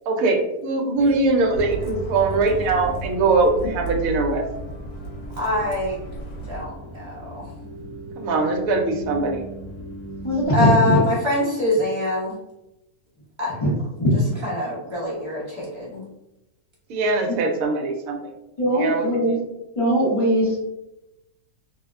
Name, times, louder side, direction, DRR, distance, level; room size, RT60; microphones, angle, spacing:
voice 1, 0.1-4.4 8.2-9.5 16.9-18.3 18.7-19.0, right 3 dB, 70° right, 2 dB, 0.9 m, -22 dB
sound 1, 1.0-10.5, right 1 dB, 55° left, 1.2 m, -39 dB
Bus, 1.5-6.7, right 3 dB, 75° left, 1.1 m, -34 dB
voice 2, 5.4-6.0 6.5-7.5 10.5-12.3 13.4-13.6 14.4-16.0, left 1 dB, 35° right, -7 dB, 0.4 m, -24 dB
voice 3, 10.2-11.0 13.6-13.7 14.0-14.4 17.3-17.4 18.6-19.4 19.8-20.6, equal, 40° left, -9 dB, 0.5 m, -20 dB
2.6 x 2.0 x 2.3 m, 0.90 s
omnidirectional pair, 1.6 m